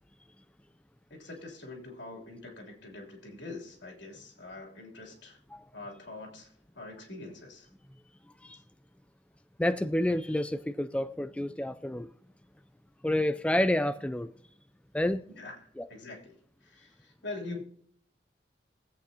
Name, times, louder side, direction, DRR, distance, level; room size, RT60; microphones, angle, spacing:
voice 1, 1.1-5.4 5.7-7.7 15.3-15.5 15.9-17.6, left 2 dB, 85° left, 3.2 m, -44 dB
voice 2, 9.6-12.1 13.0-14.3 14.9-15.2 15.8-15.9, left 1 dB, 5° left, 0.3 m, -29 dB
22.5 x 8.3 x 2.8 m
head